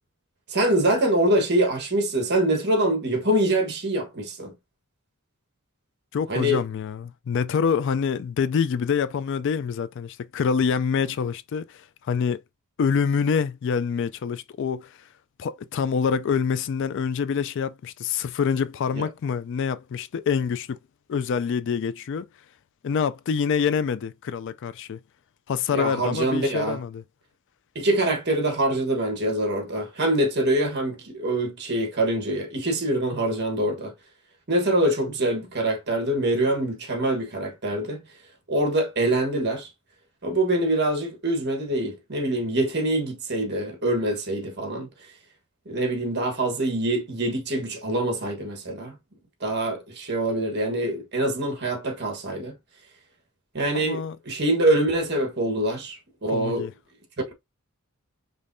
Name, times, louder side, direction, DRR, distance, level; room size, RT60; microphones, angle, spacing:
voice 1, 0.5-4.5 6.3-6.6 18.9-19.1 25.7-26.8 27.7-33.9 34.5-38.0 38.5-39.7 40.2-44.9 45.7-48.9 49.4-52.5 53.5-56.7 57.3-57.4, right 1 dB, 50° right, 1.3 m, -24 dB
voice 2, 6.1-12.4 12.8-15.1 15.4-20.8 21.1-22.3 22.8-25.0 25.5-27.0 53.7-54.2 56.3-56.7, left 6 dB, 55° left, 0.3 m, -26 dB
5.2 x 3.2 x 2.6 m
head